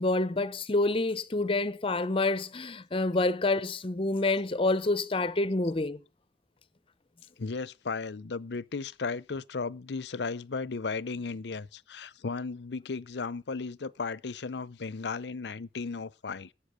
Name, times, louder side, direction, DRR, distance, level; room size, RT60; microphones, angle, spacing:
voice 1, 0.0-6.0, left 2 dB, 30° left, 0.7 m, -27 dB
voice 2, 7.4-16.5, left 4 dB, 70° left, 0.6 m, -35 dB
11.5 x 8.6 x 6.9 m
head